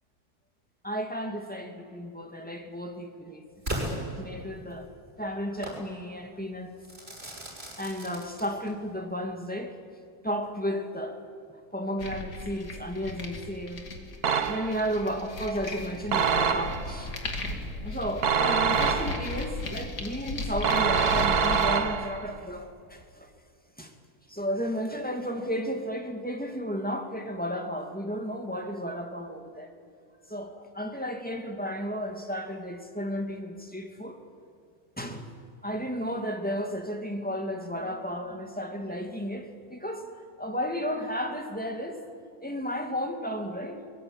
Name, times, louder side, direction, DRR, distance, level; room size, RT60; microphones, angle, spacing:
voice 1, 0.8-3.5 3.9-4.9 5.2-6.7 7.8-9.8 10.2-11.2 11.7-13.8 14.5-17.1 17.8-23.3 23.8-23.9 24.3-29.7 30.3-34.2 35.0-35.3 35.6-40.1 40.4-42.0 42.4-43.8, equal, 5° left, 3 dB, 2.3 m, -33 dB
Crackle / Fireworks, 3.6-4.8 5.6-5.9 6.8-8.8, right 1 dB, 40° right, 6.4 m, -36 dB
sound 1, 12.0-21.7, left 2 dB, 85° left, 3.0 m, -36 dB
sound 2, 14.2-14.9 16.1-17.0 18.2-19.4 20.6-22.3, right 6 dB, 75° right, 1.6 m, -25 dB
23.0 x 21.5 x 8.9 m, 2.4 s
omnidirectional pair, 1.7 m